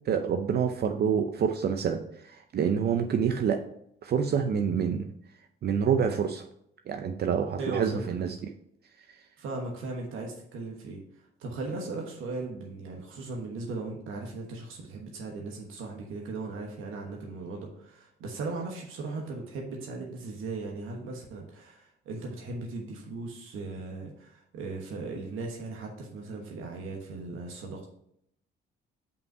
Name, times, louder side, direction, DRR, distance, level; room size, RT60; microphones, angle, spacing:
voice 1, 0.1-3.6 4.0-5.1 5.6-6.4 6.9-8.4, right 7 dB, 55° right, 5 dB, 0.6 m, -27 dB
voice 2, 7.6-8.0 9.4-27.9, right 3 dB, 90° right, 0 dB, 1.2 m, -38 dB
5.5 x 5.3 x 4.7 m, 0.72 s
cardioid pair, 90°, 20 cm